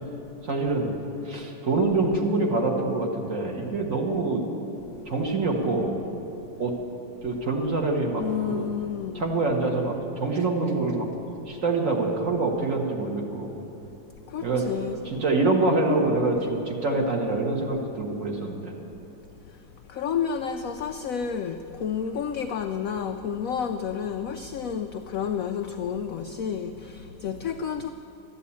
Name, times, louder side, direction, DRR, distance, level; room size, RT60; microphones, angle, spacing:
voice 1, 0.4-0.9 1.3-4.4 5.1-5.9 6.6-6.7 7.2-8.2 8.5-8.7 9.2-11.1 11.5-13.5 14.4-14.6 15.1-18.7, right 3 dB, 45° right, 1 dB, 1.7 m, -25 dB
voice 2, 8.2-9.3 14.3-15.2 19.9-27.9, left 7 dB, 80° left, 6 dB, 0.7 m, -30 dB
12.5 x 10.0 x 8.5 m, 2.9 s
omnidirectional pair, 2.1 m